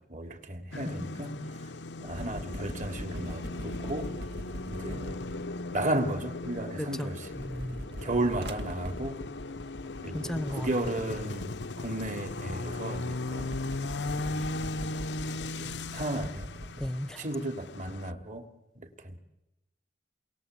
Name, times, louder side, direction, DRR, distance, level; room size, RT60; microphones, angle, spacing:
voice 1, 0.1-1.3 2.0-4.1 4.6-5.3 5.7-7.3 8.0-9.2 10.0-13.5 14.2-14.4 15.6-16.4 17.2-18.5 18.8-19.2, right 1 dB, 45° right, 6 dB, 3.4 m, -34 dB
sound 1, 0.7-18.1, left 2 dB, 90° left, 0.9 m, -38 dB
sound 2, 2.1-6.8 7.1-16.9, equal, 75° right, 2.4 m, -42 dB
voice 2, 6.8-7.8 10.1-10.7 16.8-17.2, left 1 dB, 5° left, 14 dB, 0.9 m, -35 dB
29.5 x 23.0 x 8.5 m, 0.95 s
head